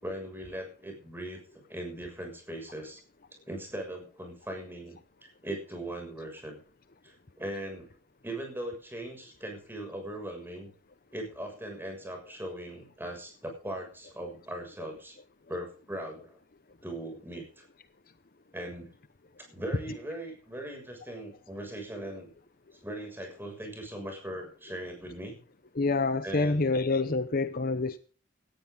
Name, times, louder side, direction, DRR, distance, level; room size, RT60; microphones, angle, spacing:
voice 1, 0.0-3.0 3.5-6.6 7.0-7.9 8.2-10.7 11.1-15.2 15.5-16.4 16.8-17.6 18.5-18.9 19.4-22.3 22.8-25.4 26.2-26.8, right 1 dB, 10° right, 6.6 m, -39 dB
voice 2, 25.8-28.0, left 3 dB, 45° left, 0.8 m, -27 dB
18.0 x 14.0 x 3.9 m
head